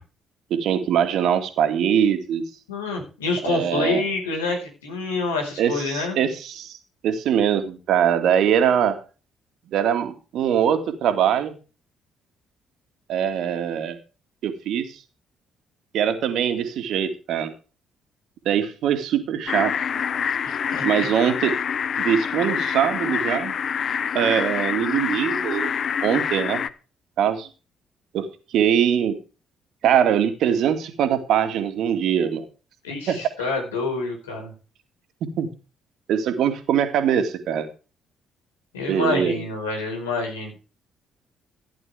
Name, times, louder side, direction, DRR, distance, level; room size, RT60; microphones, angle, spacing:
voice 1, 0.5-2.4 3.4-4.0 5.6-6.8 7.0-9.0 9.7-11.5 13.1-14.0 14.4-15.0 15.9-17.5 18.5-19.7 20.8-21.6 22.0-23.5 24.1-25.7 26.0-26.6 27.2-27.5 28.1-29.2 29.8-32.4 33.1-33.2 35.4-35.5 36.1-37.7 38.9-39.4, right 9 dB, 60° right, 8 dB, 2.3 m, -22 dB
voice 2, 2.7-6.2 20.4-20.9 32.8-34.5 38.7-40.6, left 3 dB, 80° left, 2 dB, 4.9 m, -27 dB
sound 1, 19.5-26.7, left 7 dB, 50° left, 0.8 m, -26 dB
15.0 x 11.0 x 3.5 m, 0.34 s
figure-of-eight pair, 45°, 0 cm